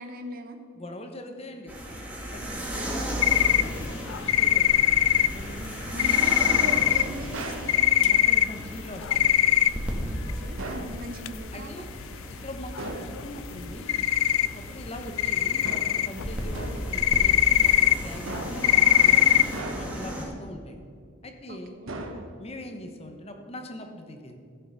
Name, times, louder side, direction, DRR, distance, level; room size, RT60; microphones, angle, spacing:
voice 1, 0.0-0.6 5.6-8.0 10.0-11.7 20.2-20.4 21.5-22.0, equal, 45° right, 7 dB, 0.8 m, -39 dB
voice 2, 0.7-1.7 2.3-5.0 5.3-5.5 6.0-6.2 8.0-9.3 11.5-11.9 12.4-14.1 14.5-19.4 19.8-20.8 21.2-21.7 22.4-24.4, left 1 dB, 30° left, 5 dB, 0.9 m, -42 dB
sound 1, 1.7-20.3, equal, 5° right, 1.5 m, -35 dB
sound 2, 3.2-10.0 10.3-10.4 10.6-10.7 11.0-11.3 11.7-11.8 12.0-12.5 12.8-13.6 13.9-14.9 15.2-19.6, left 12 dB, 75° left, 0.3 m, -22 dB
sound 3, 7.3-7.8 10.6-11.0 12.8-13.2 15.6-16.1 16.5-16.9 18.3-18.7 19.5-20.1 21.9-22.5, right 2 dB, 75° right, 1.2 m, -37 dB
14.0 x 6.6 x 5.2 m, 2.3 s
head